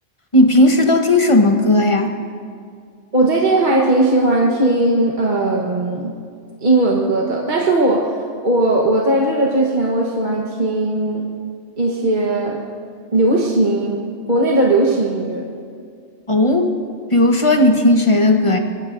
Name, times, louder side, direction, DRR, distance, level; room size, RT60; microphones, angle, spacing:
voice 1, 0.3-2.1 16.3-16.7 17.1-18.6, left 1 dB, 25° left, 4 dB, 1.2 m, -14 dB
voice 2, 3.1-6.1 6.6-8.1 8.4-11.3 11.8-12.6 13.1-14.0 14.3-15.5, right 2 dB, 40° right, -2 dB, 1.4 m, -17 dB
24.5 x 21.5 x 2.6 m, 2.2 s
omnidirectional pair, 1.3 m